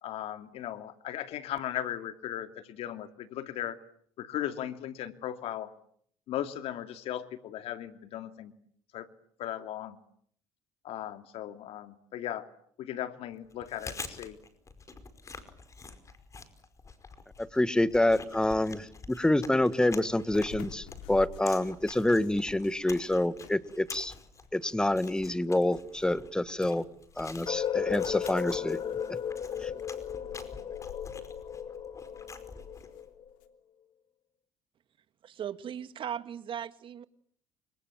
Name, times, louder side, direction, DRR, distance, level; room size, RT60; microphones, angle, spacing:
voice 1, 0.0-3.8 4.2-5.7 6.3-8.5 8.9-9.1 9.4-10.0 10.8-12.5 12.8-14.4, left 11 dB, 65° left, 9 dB, 2.7 m, -37 dB
Chewing mastication, 13.5-33.0, left 4 dB, 30° left, 5.1 m, -47 dB
voice 2, 17.4-24.1 24.5-26.8 27.2-28.8 29.1-29.2 29.6-29.7, left 1 dB, 5° left, 14 dB, 1.7 m, -27 dB
sound 1, 20.3-25.5 25.8-33.5, left 10 dB, 90° left, 3.2 m, -51 dB
sound 2, 27.5-33.3, left 8 dB, 50° left, 3.1 m, -35 dB
voice 3, 35.2-37.0, right 9 dB, 50° right, 11 dB, 2.1 m, -38 dB
29.5 x 26.0 x 7.6 m, 0.64 s
supercardioid pair, 95°, 11 cm